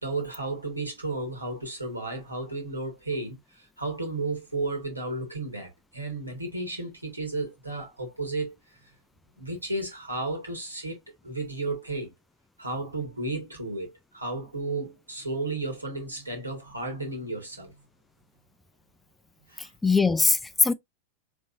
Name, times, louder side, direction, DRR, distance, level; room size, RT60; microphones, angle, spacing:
voice 1, 0.0-8.6 9.4-12.1 12.6-17.8 19.5-19.7, right 2 dB, 85° right, 1.9 m, -33 dB
voice 2, 19.6-20.7, left 3 dB, 10° left, 0.4 m, -22 dB
4.6 x 3.4 x 2.6 m
figure-of-eight pair, 90°, 0 cm